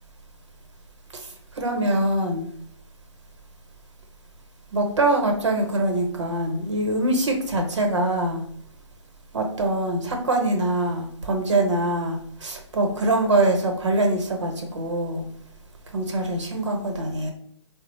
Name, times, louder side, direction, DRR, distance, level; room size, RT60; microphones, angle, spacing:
voice 1, 1.5-2.5 4.7-8.4 9.3-15.2 15.9-17.3, right 2 dB, 70° right, 3 dB, 0.9 m, -23 dB
3.5 x 2.0 x 3.0 m, 0.63 s
hypercardioid pair, 155°, 16 cm